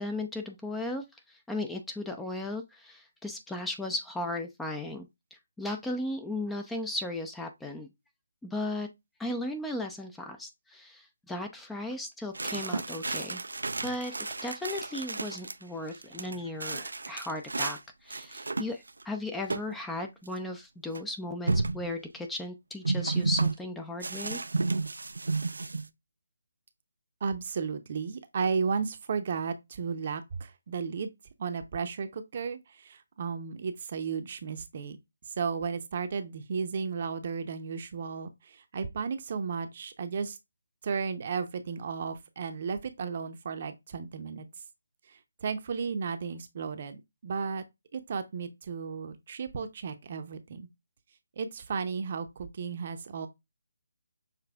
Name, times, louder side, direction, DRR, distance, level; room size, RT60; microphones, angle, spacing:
voice 1, 0.0-7.9 8.4-8.9 9.2-13.4 13.8-14.2 14.4-24.4, left 1 dB, 5° left, 0.5 m, -36 dB
sound 1, 12.3-15.5 15.9-17.8 18.1-19.0 19.5-19.7 20.0-20.1 21.0-21.1 21.5-21.9 22.8-23.5 24.0-25.9, right 3 dB, 70° right, 0.4 m, -32 dB
voice 2, 27.2-31.1 31.4-35.0 35.4-40.4 40.8-44.5 45.4-47.6 47.9-50.7 51.4-53.3, right 5 dB, 40° right, 0.7 m, -34 dB
6.7 x 3.3 x 2.3 m
figure-of-eight pair, 150°, 0 cm